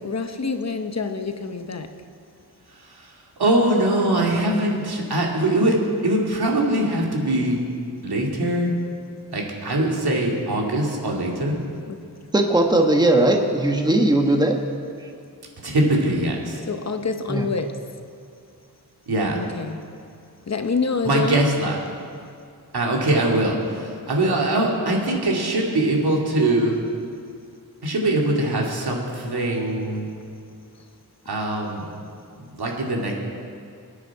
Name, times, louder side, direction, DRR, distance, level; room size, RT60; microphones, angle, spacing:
voice 1, 0.0-1.9 11.9-12.0 16.7-17.8 19.3-19.8 20.5-21.4, left 4 dB, 45° left, 7 dB, 0.8 m, -26 dB
voice 2, 2.7-3.1 3.4-5.8 6.0-7.6 8.0-8.7 9.3-11.6 15.6-16.6 19.1-19.4 21.0-21.8 22.7-26.8 27.8-30.1 31.3-31.9 32.5-33.1, right 1 dB, 70° right, -1 dB, 2.4 m, -22 dB
voice 3, 12.3-14.6 17.3-17.5, right 1 dB, 10° right, 3 dB, 1.2 m, -18 dB
24.0 x 9.6 x 4.7 m, 2.4 s
wide cardioid pair, 125°, 39 cm